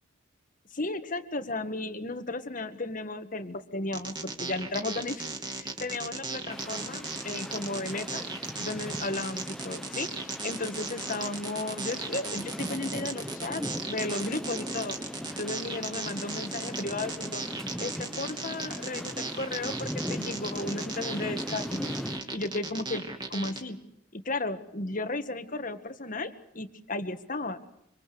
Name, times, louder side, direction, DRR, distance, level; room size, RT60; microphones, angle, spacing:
voice 1, 0.7-8.2 8.6-15.0 15.4-17.4 17.8-22.0 22.3-23.0 23.3-23.8 24.1-27.6, left 2 dB, 40° left, 9 dB, 1.7 m, -34 dB
sound 1, 3.9-23.6, right 3 dB, 20° right, 3.1 m, -36 dB
sound 2, 6.5-22.2, equal, 5° left, 1.1 m, -39 dB
26.0 x 25.5 x 6.9 m, 0.76 s
head